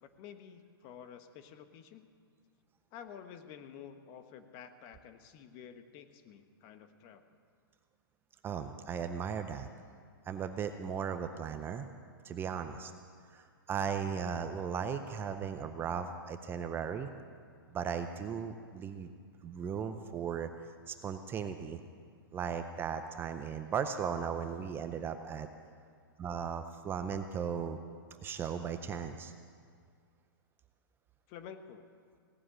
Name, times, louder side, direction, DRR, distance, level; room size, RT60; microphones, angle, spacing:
voice 1, 0.0-2.1 2.9-7.2 31.3-31.8, left 8 dB, 35° left, 9 dB, 1.1 m, -50 dB
voice 2, 8.4-9.7 10.3-11.9 12.2-12.9 13.3-17.1 17.7-19.1 19.4-20.5 20.9-21.8 22.3-25.5 26.2-27.8 28.2-29.3, right 7 dB, 15° right, 8 dB, 0.6 m, -37 dB
17.5 x 7.7 x 9.9 m, 2.1 s
hypercardioid pair, 145°, 13 cm